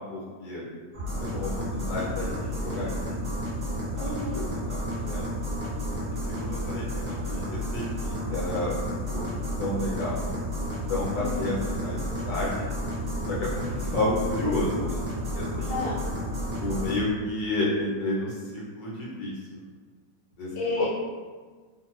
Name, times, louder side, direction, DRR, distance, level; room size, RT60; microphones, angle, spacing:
voice 1, 0.1-0.6 1.2-3.4 3.9-4.1 4.5-5.3 6.1-9.3 9.6-10.2 10.7-12.0 12.3-12.7 13.3-15.0 15.3-15.7 16.6-19.6 20.4-20.5 20.8-20.9, left 2 dB, 80° left, -5 dB, 1.4 m, -31 dB
sound 1, 0.9-17.0, equal, 45° right, 0.6 m, -31 dB
voice 2, 3.9-4.4 11.1-11.6 15.7-16.0 20.5-20.9, left 2 dB, 45° left, -6 dB, 0.8 m, -31 dB
3.1 x 2.2 x 3.0 m, 1.4 s
omnidirectional pair, 1.9 m